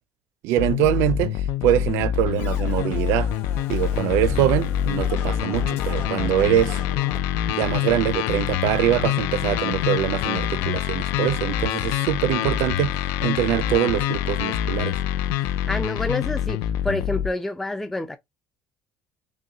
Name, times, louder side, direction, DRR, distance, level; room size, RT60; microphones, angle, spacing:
voice 1, 0.4-3.3 3.7-6.8 7.5-15.0, right 13 dB, 80° right, 0.5 m, -23 dB
sound 1, 0.6-17.3, left 11 dB, 85° left, 0.4 m, -25 dB
Scratching (performance technique), 2.4-7.2, left 5 dB, 55° left, 1.4 m, -34 dB
voice 2, 15.7-18.2, left 2 dB, 5° left, 0.3 m, -28 dB
6.2 x 2.2 x 2.7 m
cardioid pair, 170°, 5 cm